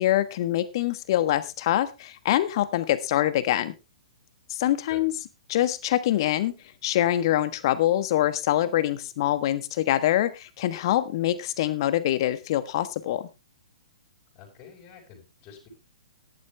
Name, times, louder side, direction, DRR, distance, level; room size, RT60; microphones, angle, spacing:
voice 1, 0.0-3.7 4.5-5.1 5.5-6.5 6.8-13.3, left 13 dB, 45° left, 14 dB, 1.3 m, -24 dB
voice 2, 14.3-15.7, left 7 dB, 30° left, 0 dB, 5.6 m, -47 dB
14.5 x 11.0 x 3.4 m, 0.26 s
figure-of-eight pair, 115°, 3 cm